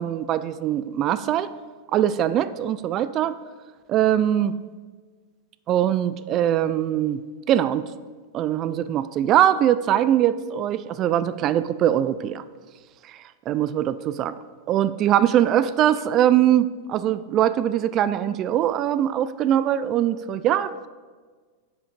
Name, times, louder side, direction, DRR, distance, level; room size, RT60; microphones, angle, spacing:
voice 1, 0.0-1.5 1.9-3.3 3.9-4.5 5.7-7.2 7.5-7.9 8.3-12.4 13.1-13.2 13.5-14.3 14.7-20.7, right 11 dB, 35° right, 15 dB, 0.3 m, -22 dB
10.0 x 5.2 x 5.0 m, 1.5 s
hypercardioid pair, 125°, 0 cm